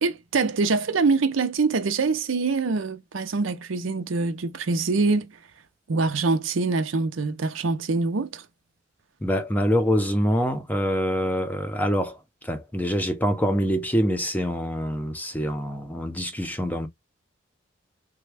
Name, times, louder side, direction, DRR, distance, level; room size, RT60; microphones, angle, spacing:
voice 1, 0.0-5.3 5.9-8.4, right 4 dB, 85° right, 0.6 m, -24 dB
voice 2, 9.2-16.9, equal, 10° left, 0.6 m, -25 dB
3.4 x 2.2 x 3.3 m
head